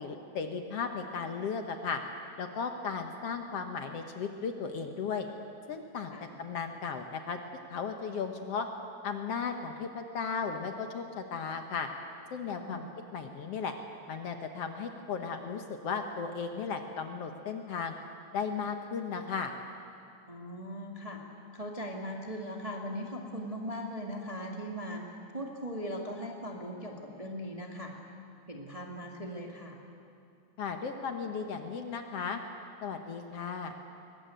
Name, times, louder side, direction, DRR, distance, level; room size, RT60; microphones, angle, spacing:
voice 1, 0.0-2.0 2.4-5.3 5.7-6.1 6.4-7.4 7.7-8.7 9.0-11.9 12.3-12.8 13.1-13.7 14.1-18.0 18.3-19.5 30.6-32.4 32.8-33.7, left 5 dB, 60° left, 5 dB, 1.9 m, -35 dB
voice 2, 20.3-21.2 21.5-25.0 25.3-27.9 28.5-29.8, equal, 15° right, 0 dB, 1.5 m, -39 dB
22.5 x 19.5 x 9.1 m, 2.5 s
omnidirectional pair, 3.4 m